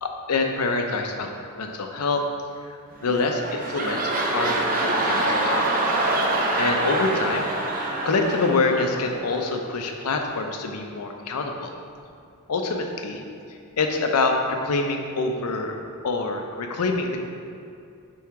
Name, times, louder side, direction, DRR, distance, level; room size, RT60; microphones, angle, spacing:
voice 1, 0.0-2.2 3.0-5.7 6.6-11.7 12.5-13.2 13.8-17.2, left 3 dB, 90° left, 3 dB, 0.6 m, -26 dB
sound 1, 3.0-9.5 10.1-10.2, right 2 dB, 40° right, 0.6 m, -25 dB
6.3 x 3.5 x 4.7 m, 2.5 s
head